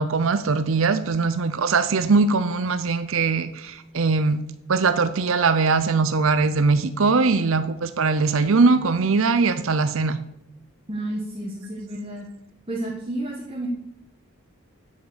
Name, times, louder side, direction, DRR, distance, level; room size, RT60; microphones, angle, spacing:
voice 1, 0.0-4.4 4.7-10.2, right 4 dB, 65° right, 11 dB, 0.6 m, -21 dB
voice 2, 10.9-12.3 12.7-13.7, right 1 dB, 25° right, -1 dB, 1.3 m, -31 dB
8.6 x 8.1 x 6.9 m, 0.82 s
head